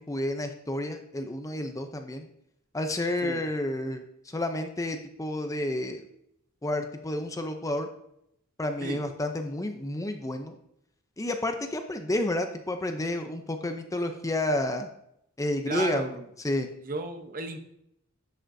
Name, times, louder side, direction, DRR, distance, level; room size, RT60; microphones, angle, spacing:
voice 1, 0.1-2.3 2.7-6.0 6.6-7.9 8.6-10.5 11.2-14.9 15.4-16.1 16.4-16.7, left 1 dB, 15° left, 6 dB, 0.6 m, -30 dB
voice 2, 15.7-16.3 16.8-17.6, right 3 dB, 40° right, 6 dB, 0.9 m, -34 dB
11.0 x 6.4 x 2.7 m, 0.75 s
head